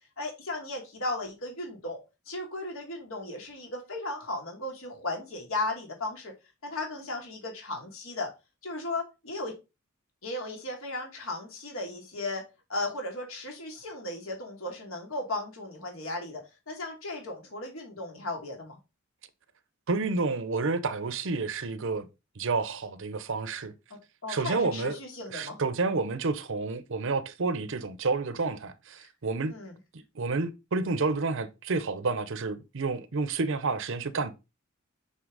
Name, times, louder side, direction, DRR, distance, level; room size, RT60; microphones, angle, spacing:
voice 1, 0.2-2.0 2.3-6.3 6.6-8.3 8.6-9.5 10.2-12.4 12.7-18.8 24.2-25.6 29.5-29.7, left 2 dB, 75° left, 2.6 m, -36 dB
voice 2, 19.9-22.1 22.4-23.7 24.3-25.0 25.3-29.5 29.9-34.3, right 3 dB, 60° right, 0.7 m, -30 dB
6.1 x 5.6 x 3.9 m
head